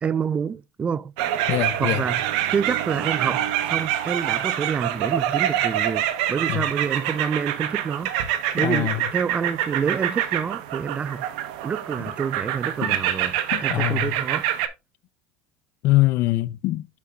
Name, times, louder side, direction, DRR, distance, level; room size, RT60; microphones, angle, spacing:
voice 1, 0.0-1.1 1.8-2.2 2.5-8.1 8.5-11.2 11.6-14.5, right 6 dB, 30° right, 0.4 m, -28 dB
sound 1, 1.2-14.7, right 11 dB, 80° right, 1.0 m, -26 dB
voice 2, 1.5-2.0 6.5-6.7 8.6-9.0 12.8-13.0 13.5-14.1 15.8-16.9, left 18 dB, 65° left, 0.5 m, -23 dB
8.3 x 6.3 x 2.4 m
supercardioid pair, 100°, 4 cm